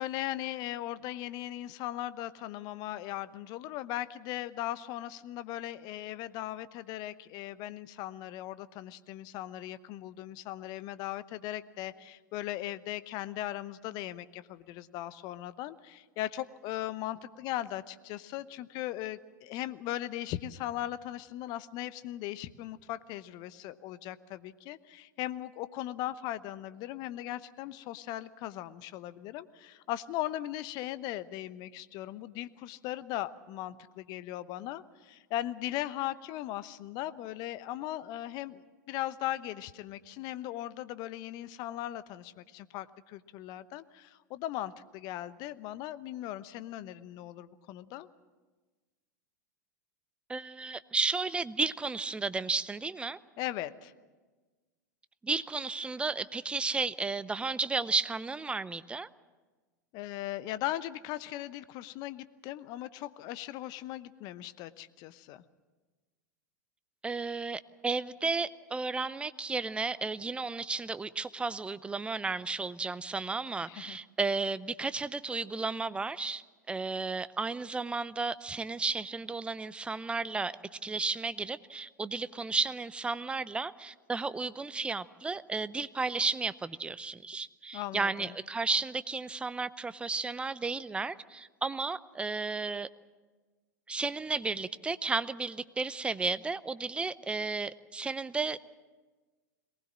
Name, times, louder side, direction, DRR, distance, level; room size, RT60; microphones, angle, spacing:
voice 1, 0.0-38.6 38.9-48.1 53.4-53.9 59.9-65.4 73.7-74.0 87.7-88.3, left 14 dB, 45° left, 15 dB, 0.9 m, -38 dB
voice 2, 50.3-53.2 55.2-59.1 67.0-80.5 80.8-92.9 93.9-98.6, right 4 dB, 10° right, 16 dB, 0.7 m, -33 dB
22.5 x 19.5 x 7.4 m, 1.3 s
figure-of-eight pair, 95°, 10 cm